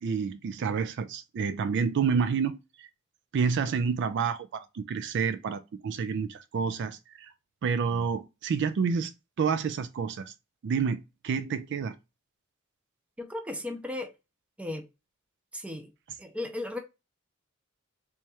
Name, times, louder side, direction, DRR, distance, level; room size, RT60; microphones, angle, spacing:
voice 1, 0.0-2.9 3.3-7.3 7.6-10.3 10.6-11.9, right 6 dB, 55° right, 0.3 m, -29 dB
voice 2, 13.2-14.1 14.6-14.9 15.5-15.9 16.2-16.8, left 2 dB, 5° right, 0.6 m, -35 dB
3.4 x 3.2 x 2.9 m
head